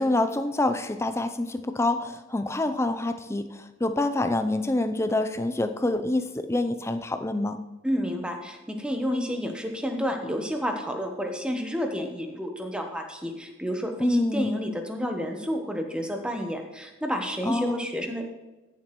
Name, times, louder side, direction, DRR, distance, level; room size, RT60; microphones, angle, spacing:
voice 1, 0.0-7.6 14.0-14.5 17.5-17.8, left 2 dB, 10° left, 9 dB, 0.4 m, -26 dB
voice 2, 7.8-18.3, equal, 5° right, 4 dB, 0.9 m, -30 dB
14.0 x 7.3 x 3.1 m, 1.1 s
head